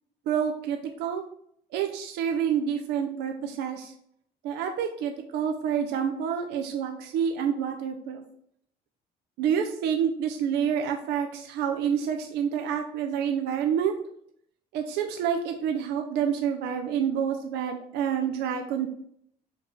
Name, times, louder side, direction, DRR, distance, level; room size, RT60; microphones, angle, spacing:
voice 1, 0.3-1.2 1.7-3.9 4.4-8.2 9.4-14.0 14.7-18.9, right 8 dB, 80° right, 5 dB, 0.4 m, -28 dB
4.6 x 2.8 x 3.5 m, 0.70 s
cardioid pair, 110°, 17 cm